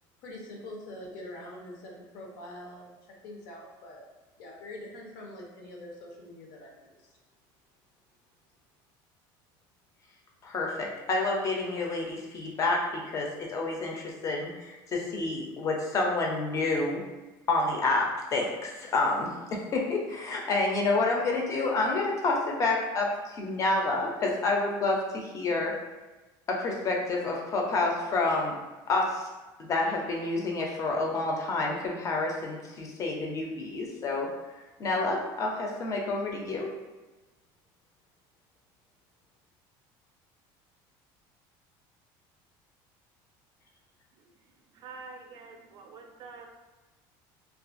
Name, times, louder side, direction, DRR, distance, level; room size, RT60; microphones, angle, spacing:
voice 1, 0.2-3.0 3.2-4.0 4.4-6.9, left 1 dB, 75° left, -1 dB, 0.7 m, -44 dB
voice 2, 10.4-17.0 17.5-19.3 19.7-25.7 26.5-28.6 28.9-29.3 29.6-34.3 34.8-36.7, left 3 dB, 30° left, 0 dB, 0.5 m, -29 dB
voice 3, 44.7-46.5, right 4 dB, 45° right, 3 dB, 0.4 m, -46 dB
2.4 x 2.4 x 2.5 m, 1.1 s
cardioid pair, 145°, 10 cm